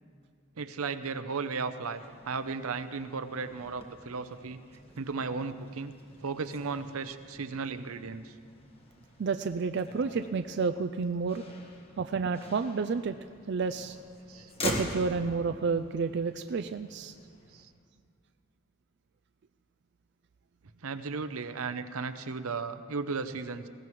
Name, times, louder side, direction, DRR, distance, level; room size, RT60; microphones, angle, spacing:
voice 1, 0.6-4.6 5.0-5.9 6.2-8.2 12.0-12.1 14.3-14.5 17.5-17.7 20.8-23.7, right 4 dB, 80° right, 11 dB, 0.7 m, -35 dB
Motor vehicle (road), 1.8-17.6, left 1 dB, 25° left, 1.5 m, -44 dB
voice 2, 9.2-11.4 12.0-13.2 13.5-14.0 14.6-17.1, right 5 dB, 50° right, 9 dB, 0.4 m, -30 dB
20.5 x 16.5 x 3.1 m, 2.2 s
head